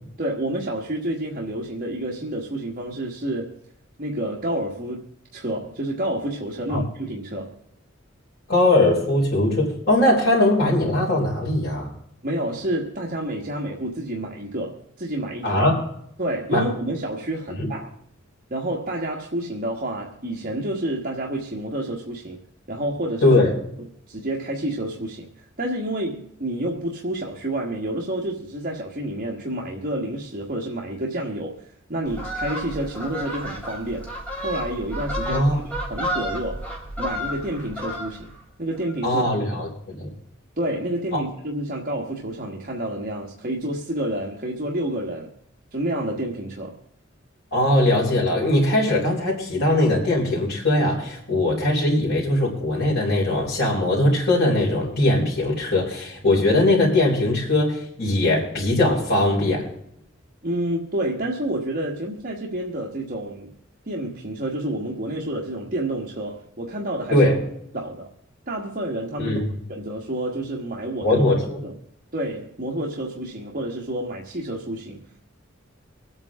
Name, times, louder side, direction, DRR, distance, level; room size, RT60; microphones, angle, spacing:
voice 1, 0.2-3.6 4.0-7.6 12.2-15.6 16.2-17.9 18.5-22.4 22.7-23.4 24.1-25.3 25.6-34.1 34.4-36.7 37.0-38.3 38.6-39.2 39.5-39.6 40.6-45.3 45.7-46.8 60.4-63.5 63.9-67.3 67.7-68.1 68.5-71.2 71.6-71.8 72.1-75.0, right 1 dB, 45° right, 1.7 m, -29 dB
voice 2, 8.5-11.9 15.4-15.8 16.5-16.7 17.6-17.7 23.2-23.5 35.3-35.6 39.0-40.1 41.1-41.2 47.5-59.7 67.1-67.4 69.2-69.4 71.0-71.6, left 1 dB, 55° left, 4.5 m, -20 dB
Fowl, 32.0-38.4 38.7-39.0, equal, 10° left, 4.2 m, -31 dB
25.0 x 8.9 x 3.7 m
head